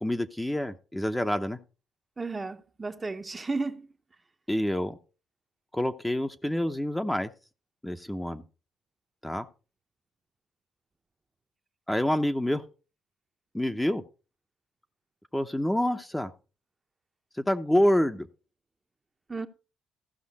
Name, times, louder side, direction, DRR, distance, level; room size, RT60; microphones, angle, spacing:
voice 1, 0.0-1.6 4.5-5.0 5.7-7.3 7.8-8.4 9.2-9.5 11.9-12.6 13.5-14.0 15.3-16.3 17.4-18.3, left 1 dB, 5° left, 0.8 m, -27 dB
voice 2, 2.2-3.9 19.3-19.5, right 3 dB, 25° right, 0.8 m, -33 dB
15.0 x 5.6 x 4.1 m
cardioid pair, 90°, 0 cm